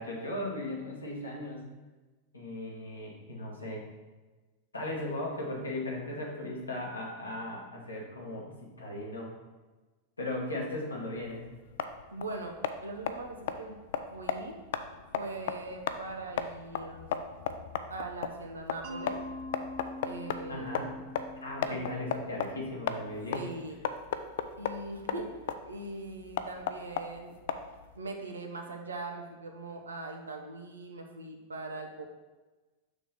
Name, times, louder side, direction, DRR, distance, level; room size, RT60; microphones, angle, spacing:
voice 1, 0.0-1.6 2.3-3.8 4.7-9.3 10.2-11.4 20.5-20.9 21.4-23.4, left 1 dB, 80° left, -2 dB, 1.5 m, -37 dB
sound 1, 11.2-28.0, left 8 dB, 55° left, 0.4 m, -36 dB
voice 2, 12.1-13.8 14.1-14.6 14.9-17.0 17.9-19.2 20.0-20.8 21.7-21.9 23.3-23.8 24.6-27.4 28.0-32.1, right 2 dB, 75° right, 4 dB, 0.8 m, -41 dB
Mallet percussion, 18.8-23.6, left 1 dB, 55° right, 1.2 m, -44 dB
6.5 x 3.2 x 5.8 m, 1.2 s
figure-of-eight pair, 90°, 0 cm